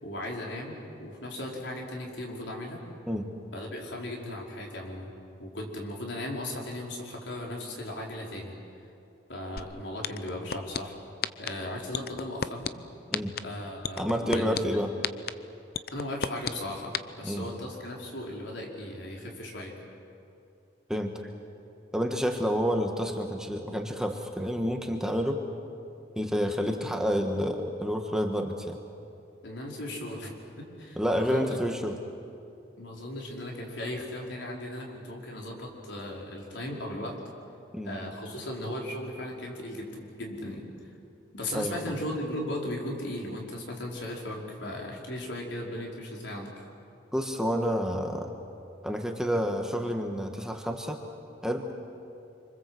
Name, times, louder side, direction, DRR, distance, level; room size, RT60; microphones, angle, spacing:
voice 1, 0.0-2.8 3.5-5.1 5.4-8.5 9.3-10.9 11.4-12.7 13.4-14.8 15.9-16.9 17.2-19.7 29.4-31.5 32.8-37.1 37.8-40.6 41.3-46.5, left 1 dB, 80° left, -1 dB, 4.9 m, -37 dB
sound 1, 9.6-9.7 10.0-10.8 11.2-11.5 11.9-12.7 13.1-13.4 13.8-14.6 15.0-15.3 15.7-16.5 16.9-17.0, left 7 dB, 55° left, 0.7 m, -29 dB
voice 2, 14.0-14.9 17.2-17.4 20.9-21.1 21.9-25.4 26.1-28.8 31.0-32.0 37.7-37.9 41.5-41.8 47.1-48.3 48.8-51.0 51.4-51.7, equal, 5° right, 3 dB, 1.5 m, -29 dB
27.0 x 25.5 x 7.9 m, 2.6 s
head